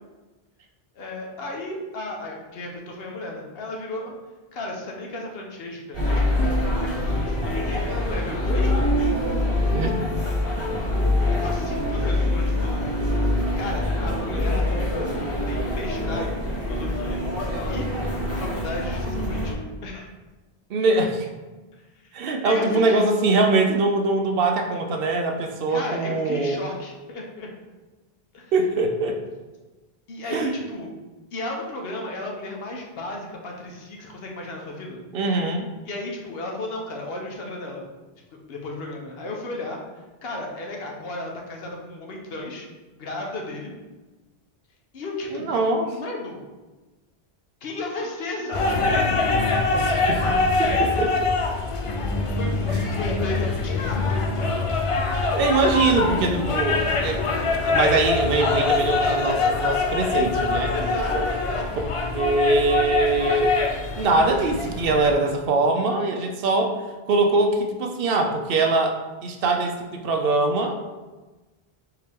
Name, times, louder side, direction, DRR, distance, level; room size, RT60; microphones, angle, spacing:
voice 1, 0.9-4.1 4.5-6.5 6.9-8.7 11.2-14.7 15.5-17.9 18.3-20.1 21.7-22.2 22.4-23.0 25.7-27.5 28.3-28.5 30.1-30.9 31.3-35.0 35.8-37.8 38.5-39.8 40.2-42.7 43.0-43.7 44.9-45.5 45.8-46.4 47.6-48.8 49.3-49.4 50.8-51.0 52.4-54.5 60.7-61.8, left 2 dB, 75° left, 0 dB, 1.0 m, -34 dB
sound 1, 5.9-19.5, left 1 dB, 15° left, 1.0 m, -24 dB
voice 2, 20.7-21.3 22.1-26.6 28.5-29.2 30.3-30.5 35.1-35.7 45.3-45.9 49.7-51.3 55.1-57.2 57.7-60.7 62.1-63.5 64.0-66.8 67.1-70.8, right 3 dB, 70° right, 4 dB, 0.7 m, -22 dB
sound 2, 48.5-65.1, left 3 dB, 50° left, 0.4 m, -24 dB
4.6 x 2.8 x 3.5 m, 1.2 s
omnidirectional pair, 1.0 m